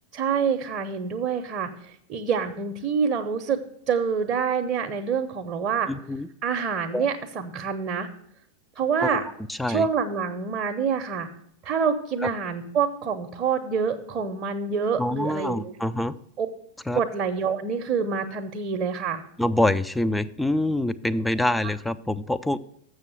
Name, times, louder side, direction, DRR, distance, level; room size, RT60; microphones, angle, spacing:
voice 1, 0.1-3.6 3.9-5.9 6.4-8.1 8.8-9.2 9.7-11.3 11.6-15.8 16.4-16.5 16.9-19.2, right 6 dB, 35° right, 4 dB, 0.7 m, -26 dB
voice 2, 5.9-6.3 6.9-7.1 9.0-9.2 9.5-9.8 15.0-16.1 16.9-17.0 19.4-22.6, left 1 dB, 5° left, 13 dB, 0.4 m, -25 dB
7.3 x 6.3 x 7.8 m, 0.71 s
figure-of-eight pair, 90°, 0 cm